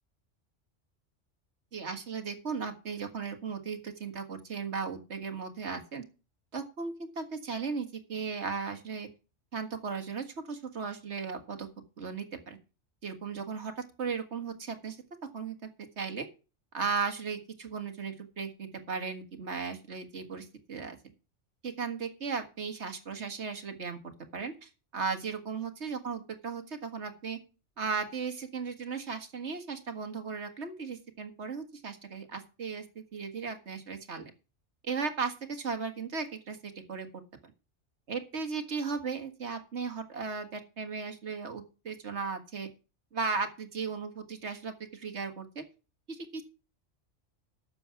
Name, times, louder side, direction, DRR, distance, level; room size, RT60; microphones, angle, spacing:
voice 1, 1.7-6.0 6.5-9.1 9.5-11.7 12.0-12.6 13.0-15.0 15.3-15.7 16.0-16.3 16.7-21.0 21.6-27.4 27.8-34.3 34.8-37.2 38.1-42.7 43.1-45.6 46.1-46.4, right 5 dB, 65° right, 6 dB, 1.9 m, -36 dB
12.0 x 7.1 x 5.8 m, 0.33 s
omnidirectional pair, 1.2 m